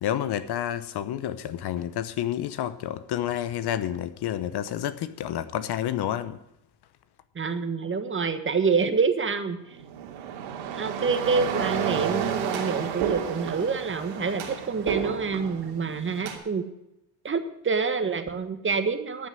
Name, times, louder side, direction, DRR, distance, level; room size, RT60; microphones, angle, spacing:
voice 1, 0.0-6.4, left 11 dB, 50° left, 0.9 m, -29 dB
voice 2, 7.3-9.8 10.7-16.7 17.2-19.3, right 5 dB, 25° right, 1.3 m, -27 dB
sound 1, 9.7-16.4, right 8 dB, 75° right, 2.9 m, -31 dB
13.5 x 6.2 x 9.7 m
supercardioid pair, 105°, 50 cm